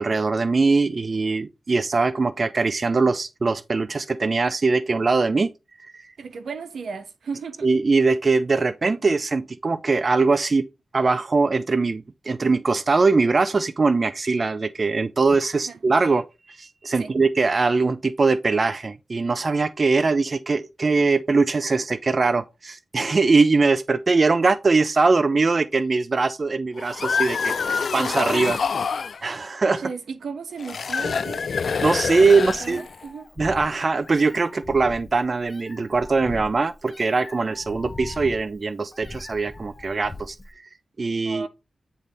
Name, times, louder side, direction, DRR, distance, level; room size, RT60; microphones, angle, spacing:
voice 1, 0.0-5.5 5.9-6.1 7.6-10.6 10.9-28.6 29.2-29.8 31.8-32.8 33.4-40.7 41.0-41.5, right 4 dB, 40° right, 0.4 m, -21 dB
voice 2, 6.2-7.7 15.5-15.8 17.0-17.1 29.8-31.4 32.3-33.3 41.2-41.5, right 5 dB, 85° right, 1.0 m, -35 dB
sound 1, 26.8-29.2 30.6-33.0, left 5 dB, 65° left, 0.3 m, -26 dB
Meow, 31.1-40.5, left 2 dB, 30° left, 0.9 m, -41 dB
9.1 x 3.3 x 4.0 m
wide cardioid pair, 105°, 0 cm